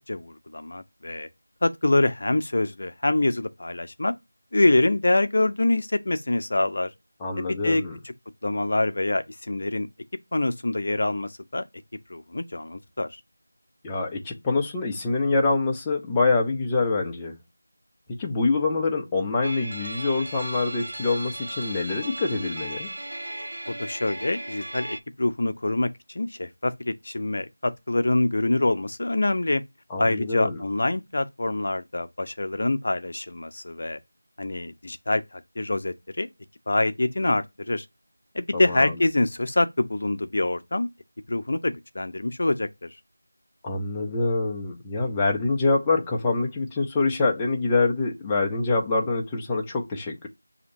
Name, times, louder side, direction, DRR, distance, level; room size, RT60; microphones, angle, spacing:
voice 1, 0.1-1.3 1.6-4.1 4.5-6.9 7.5-7.8 8.4-9.9 10.3-11.6 12.1-13.1 23.7-29.6 30.0-34.0 34.4-36.3 36.7-37.8 38.3-40.9 41.3-42.9, left 2 dB, 50° left, 0.6 m, -25 dB
voice 2, 7.2-8.0 13.8-17.4 18.2-22.9 29.9-30.6 38.5-38.9 43.6-50.3, left 3 dB, 10° left, 0.6 m, -25 dB
sound 1, 19.4-25.0, right 1 dB, 65° right, 0.7 m, -36 dB
6.4 x 2.8 x 2.5 m
figure-of-eight pair, 175°, 0 cm